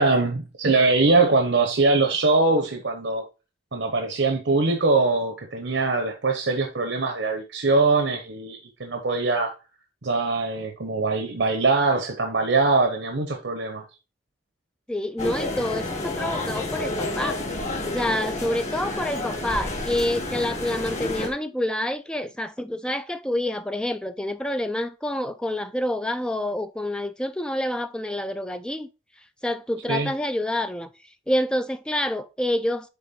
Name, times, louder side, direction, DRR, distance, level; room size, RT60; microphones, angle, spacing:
voice 1, 0.0-3.2 3.7-9.5 10.0-13.8 29.9-30.1, right 3 dB, 85° right, 1.0 m, -22 dB
voice 2, 14.9-17.4 17.9-28.9 29.4-30.9 31.3-32.9, left 1 dB, 5° left, 0.3 m, -27 dB
sound 1, 15.2-21.3, left 2 dB, 40° left, 1.9 m, -30 dB
7.3 x 3.6 x 4.2 m
head